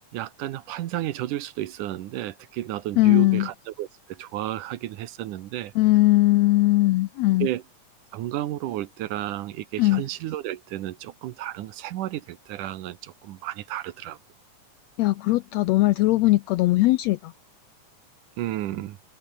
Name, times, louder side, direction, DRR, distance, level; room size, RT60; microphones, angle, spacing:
voice 1, 0.1-5.7 7.4-7.6 8.1-14.2 18.4-19.0, right 14 dB, 85° right, 2.6 m, -32 dB
voice 2, 3.0-3.5 5.8-7.5 9.8-10.0 15.0-17.3, left 18 dB, 85° left, 1.5 m, -20 dB
omnidirectional pair, 3.6 m